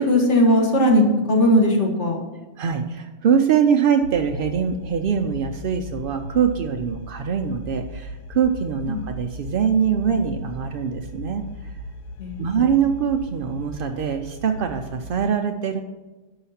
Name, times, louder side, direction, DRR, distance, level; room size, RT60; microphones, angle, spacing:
voice 1, 0.0-2.2 8.8-9.0 12.2-12.8, left 1 dB, 50° left, 0 dB, 1.7 m, -19 dB
voice 2, 2.6-11.4 12.4-15.8, right 7 dB, 80° right, 5 dB, 0.4 m, -23 dB
sound 1, 4.0-15.1, left 1 dB, 80° left, 1.1 m, -37 dB
6.0 x 5.6 x 5.6 m, 1.2 s
omnidirectional pair, 1.5 m